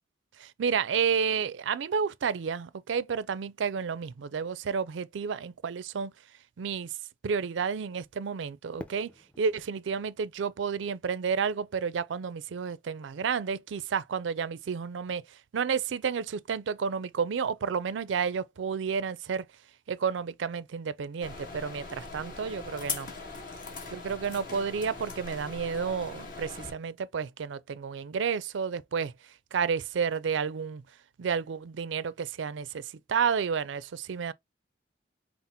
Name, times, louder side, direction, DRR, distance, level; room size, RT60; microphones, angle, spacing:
voice 1, 0.4-6.1 6.6-6.9 7.2-9.1 9.4-15.2 15.5-19.4 19.9-23.1 23.9-29.1 29.5-30.8 31.2-34.3, right 6 dB, 85° right, 0.4 m, -31 dB
Fireworks, 8.8-11.8, left 1 dB, 5° left, 0.6 m, -50 dB
sound 1, 21.2-26.7, left 4 dB, 50° left, 1.5 m, -40 dB
5.7 x 2.0 x 3.5 m
head